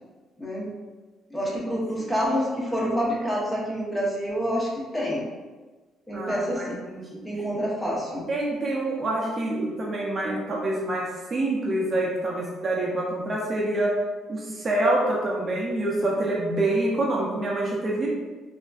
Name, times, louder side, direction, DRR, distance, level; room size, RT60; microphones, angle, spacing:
voice 1, 0.4-0.7 1.3-4.7 4.9-5.2 6.1-6.7 7.2-8.2, equal, 5° left, -5 dB, 0.7 m, -27 dB
voice 2, 1.7-2.1 6.1-7.2 8.3-13.9 14.3-18.1, right 1 dB, 30° right, -3 dB, 0.5 m, -26 dB
3.4 x 2.5 x 2.3 m, 1.3 s
cardioid pair, 110°, 0 cm